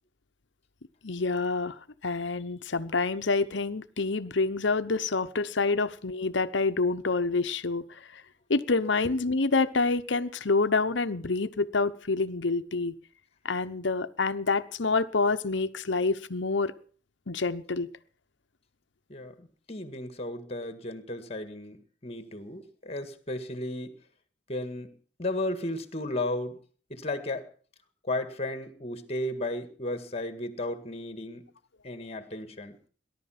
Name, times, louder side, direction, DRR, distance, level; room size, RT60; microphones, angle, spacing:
voice 1, 1.0-1.8 2.0-7.8 8.1-8.2 8.5-12.9 13.4-16.7 17.3-17.9, left 3 dB, 65° left, 12 dB, 0.9 m, -27 dB
voice 2, 19.1-23.9 24.5-24.9 25.2-26.6 26.9-27.5 28.0-31.4 31.8-32.8, left 1 dB, 35° left, 10 dB, 1.9 m, -34 dB
19.5 x 11.5 x 5.9 m, 0.43 s
head